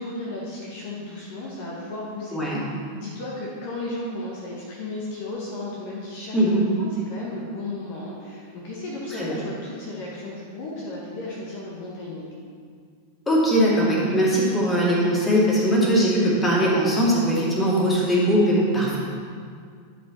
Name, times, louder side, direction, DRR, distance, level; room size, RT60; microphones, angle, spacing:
voice 1, 0.0-2.5 2.9-12.3, left 2 dB, 50° left, -4 dB, 1.5 m, -34 dB
voice 2, 2.3-2.6 6.3-6.7 9.2-9.4 13.3-19.0, equal, 15° left, -5 dB, 2.4 m, -20 dB
11.5 x 5.2 x 4.2 m, 2.1 s
figure-of-eight pair, 90°, 0 cm